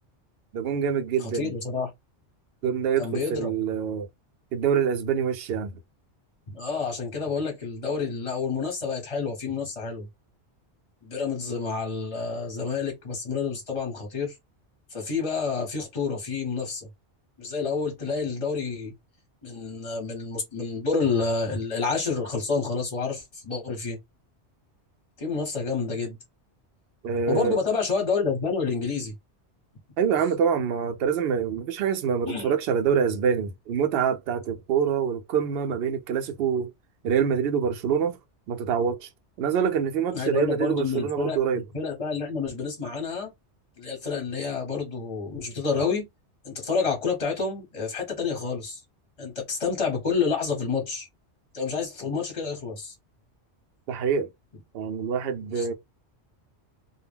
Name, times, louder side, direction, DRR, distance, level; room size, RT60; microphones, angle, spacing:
voice 1, 0.5-1.5 2.6-4.1 4.5-5.7 27.0-27.6 30.0-36.7 37.0-38.2 38.5-39.1 39.4-41.6 53.9-54.3 54.7-55.7, right 7 dB, 65° right, 0.7 m, -25 dB
voice 2, 1.3-1.9 3.0-3.5 6.5-10.1 11.0-14.4 14.9-16.9 17.4-18.9 19.4-24.0 25.2-26.2 27.3-29.1 32.3-32.5 40.1-43.3 43.8-46.1 46.4-48.8 49.2-51.1 51.5-52.9 55.5-55.7, left 5 dB, 30° left, 0.9 m, -29 dB
2.2 x 2.1 x 3.3 m
omnidirectional pair, 1.2 m